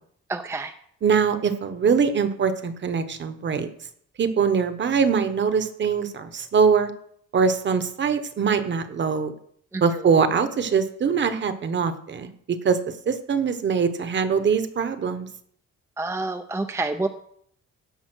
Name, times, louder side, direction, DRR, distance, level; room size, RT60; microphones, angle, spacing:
voice 1, 0.3-0.7 9.7-10.0 16.0-17.1, right 2 dB, 10° right, 5 dB, 0.5 m, -28 dB
voice 2, 1.0-3.7 4.2-6.9 7.3-9.3 9.8-12.8 13.1-15.3, right 6 dB, 35° right, 10 dB, 1.0 m, -22 dB
16.5 x 5.5 x 6.2 m, 0.65 s
cardioid pair, 170°, 30 cm